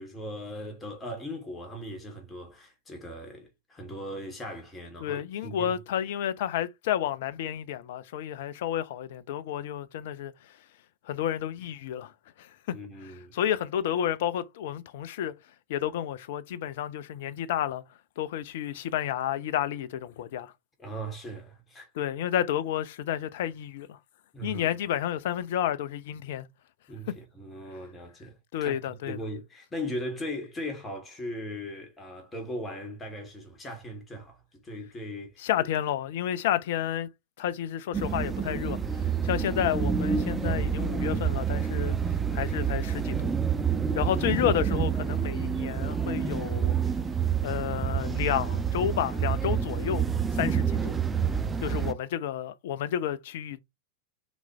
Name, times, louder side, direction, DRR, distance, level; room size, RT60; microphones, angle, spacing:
voice 1, 0.0-5.8 12.7-13.4 20.8-22.0 24.3-24.7 26.9-35.4 44.0-44.3, equal, 15° left, 3.2 m, -39 dB
voice 2, 5.0-10.3 11.1-12.1 12.4-12.5 13.0-15.3 15.7-17.8 18.2-20.5 21.9-24.0 24.4-26.5 28.5-29.2 35.4-37.1 37.4-42.0 42.3-43.3 43.9-46.8 47.4-50.0 50.3-50.9 51.6-53.6, left 10 dB, 55° left, 0.7 m, -31 dB
sound 1, 37.9-51.9, right 7 dB, 15° right, 1.0 m, -28 dB
6.1 x 5.3 x 3.4 m
figure-of-eight pair, 90°, 0 cm